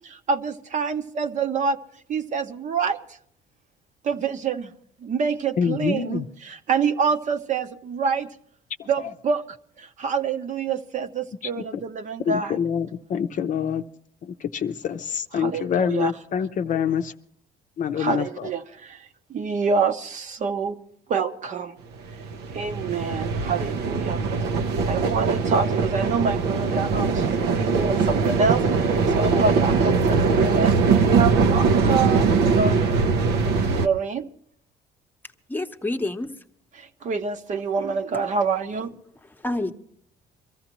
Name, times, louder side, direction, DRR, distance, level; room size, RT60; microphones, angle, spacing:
voice 1, 0.3-1.8 2.1-3.0 4.0-4.7 5.0-8.3 8.9-9.4 10.0-12.6 15.3-16.1 18.0-19.0 19.3-20.8 21.1-21.7 22.5-24.2 24.9-28.6 29.2-32.9 33.4-34.3 37.0-38.9, right 5 dB, 45° right, 7 dB, 0.8 m, -26 dB
voice 2, 5.6-6.3 9.0-9.1 11.6-11.8 12.3-13.9 14.2-17.1 17.8-18.5, left 7 dB, 50° left, 9 dB, 0.6 m, -26 dB
sound 1, 22.0-33.9, right 4 dB, 80° right, 0.8 m, -21 dB
voice 3, 35.5-36.4 39.2-39.7, left 2 dB, 10° left, 6 dB, 0.9 m, -28 dB
23.5 x 14.5 x 3.0 m, 0.64 s
cardioid pair, 110°, 17 cm